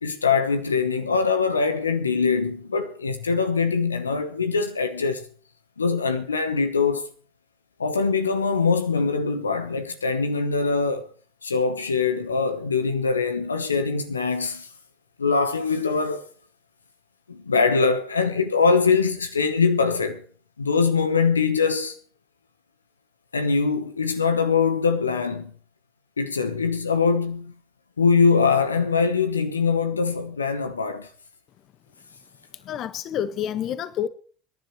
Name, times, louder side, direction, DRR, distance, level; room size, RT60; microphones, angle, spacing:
voice 1, 0.0-5.2 5.8-7.1 7.8-11.1 11.4-14.7 15.2-16.2 17.3-20.2 20.6-22.0 23.3-25.5 26.2-27.5 28.0-31.1, left 5 dB, 85° left, 1.1 m, -23 dB
voice 2, 32.5-34.1, left 10 dB, 45° left, 1.3 m, -28 dB
24.5 x 11.0 x 3.1 m
figure-of-eight pair, 75°, 0 cm